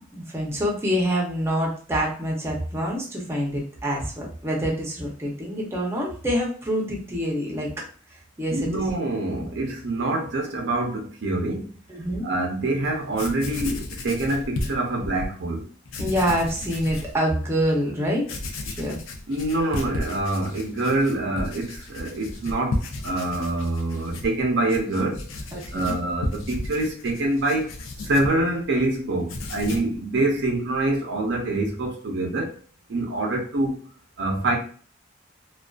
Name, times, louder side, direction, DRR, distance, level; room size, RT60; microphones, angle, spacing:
voice 1, 0.3-7.7 8.4-8.7 9.3-9.4 11.9-12.3 16.0-18.3 18.7-19.0 25.5-26.0, equal, 15° right, 0.6 m, -26 dB
voice 2, 8.5-11.8 12.2-15.6 19.3-25.3 25.7-27.7 28.0-32.5 32.9-33.8 34.2-34.6, right 2 dB, 60° right, 0.6 m, -25 dB
Writing, 12.8-12.9 13.1-15.3 15.8-17.1 17.6-17.7 18.2-28.9 29.2-30.0, left 2 dB, 85° left, 0.4 m, -34 dB
2.4 x 2.3 x 2.3 m
head